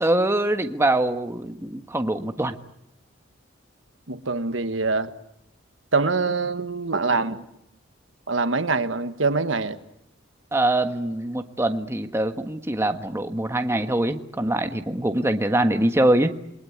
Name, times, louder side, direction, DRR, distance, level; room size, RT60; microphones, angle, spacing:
voice 1, 0.0-2.6 10.5-16.3, right 1 dB, 15° right, 1.5 m, -23 dB
voice 2, 4.1-5.1 5.9-7.4 8.3-9.8, right 3 dB, 70° right, 1.5 m, -24 dB
28.5 x 21.5 x 9.5 m
head